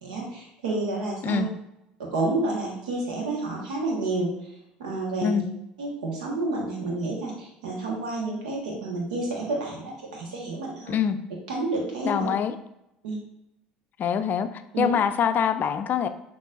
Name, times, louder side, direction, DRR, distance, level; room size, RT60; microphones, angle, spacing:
voice 1, 0.0-1.5 2.0-4.3 4.8-5.4 5.8-11.0 11.5-12.3 13.0-13.2 14.7-14.9, right 2 dB, 80° right, -2 dB, 1.3 m, -29 dB
voice 2, 12.0-12.5 14.0-14.5 14.8-16.1, left 7 dB, 45° left, 10 dB, 0.4 m, -24 dB
6.2 x 3.0 x 2.5 m, 0.83 s
hypercardioid pair, 70°, 4 cm